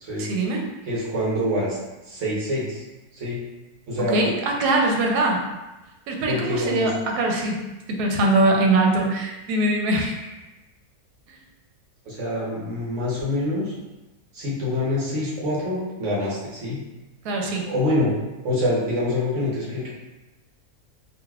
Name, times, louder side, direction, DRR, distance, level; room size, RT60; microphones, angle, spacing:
voice 1, 0.2-0.6 4.1-5.4 6.1-7.6 7.9-10.4 17.2-17.7, right 2 dB, 85° right, 1 dB, 1.1 m, -22 dB
voice 2, 0.8-1.8 2.1-2.8 3.1-3.4 3.9-4.2 6.3-6.9 12.0-13.7 14.3-16.8 17.6-18.2 18.4-19.9, left 1 dB, 55° right, -5 dB, 1.2 m, -25 dB
3.9 x 2.3 x 2.3 m, 1.1 s
omnidirectional pair, 1.6 m